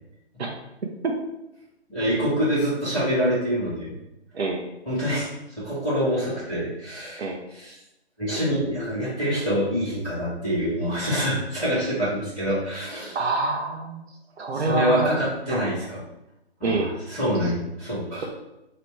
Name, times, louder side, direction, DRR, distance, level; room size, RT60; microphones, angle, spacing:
voice 1, 1.9-3.9 4.8-7.8 8.2-13.2 14.5-16.0 16.6-18.2, equal, 5° left, -20 dB, 1.1 m, -26 dB
voice 2, 13.1-14.0 14.4-15.1 15.5-15.7 16.6-16.9 17.4-17.5, right 3 dB, 70° right, 0 dB, 0.7 m, -26 dB
3.1 x 2.9 x 4.5 m, 0.92 s
hypercardioid pair, 175°, 33 cm